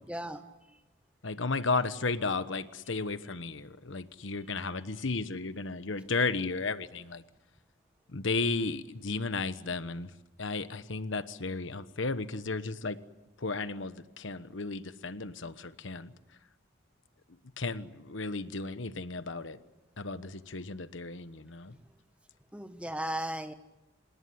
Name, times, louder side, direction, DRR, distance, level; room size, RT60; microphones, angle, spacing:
voice 1, 0.1-0.4 22.5-23.5, right 1 dB, 5° right, 8 dB, 1.5 m, -35 dB
voice 2, 1.2-7.2 8.1-10.1 10.4-13.0 13.4-16.1 17.6-19.6 20.0-21.7, left 3 dB, 75° left, 12 dB, 1.2 m, -34 dB
26.5 x 20.0 x 9.6 m, 1.0 s
head